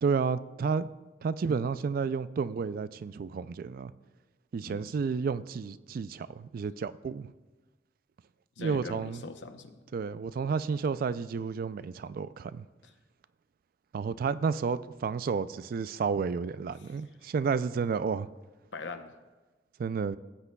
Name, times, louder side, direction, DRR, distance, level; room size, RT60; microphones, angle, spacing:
voice 1, 0.0-0.9 1.2-3.9 4.5-7.3 8.6-9.3 9.9-12.7 13.9-18.3 19.8-20.2, right 5 dB, 55° right, 0.3 m, -31 dB
voice 2, 4.6-4.9 8.6-9.8 12.8-12.9 18.7-19.2, left 3 dB, 85° left, 0.8 m, -42 dB
17.5 x 8.3 x 2.3 m
head